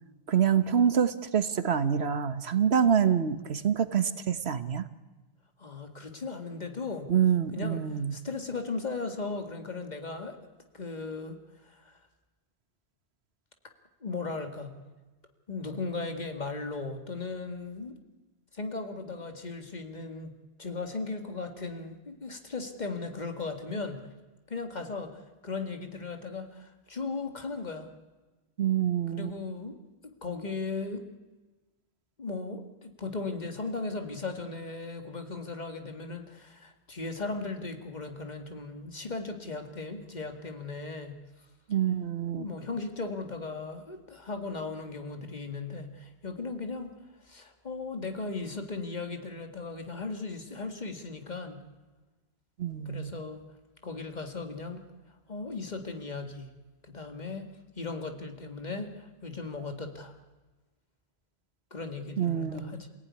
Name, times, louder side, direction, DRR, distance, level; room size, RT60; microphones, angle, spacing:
voice 1, 0.3-4.8 7.1-8.1 28.6-29.3 41.7-42.5 52.6-53.1 62.2-62.8, right 8 dB, 85° right, 12 dB, 1.5 m, -26 dB
voice 2, 5.6-7.1 7.5-10.4 10.7-12.0 14.0-14.8 15.5-18.0 18.5-20.3 20.6-24.0 24.5-27.9 29.1-29.7 30.2-31.1 32.2-41.2 42.4-46.9 47.2-51.6 52.9-53.4 53.8-54.8 55.3-56.5 56.8-57.5 57.8-60.2 61.7-62.9, left 3 dB, 45° left, 6 dB, 2.2 m, -37 dB
28.0 x 17.0 x 9.8 m, 1.2 s
omnidirectional pair, 1.0 m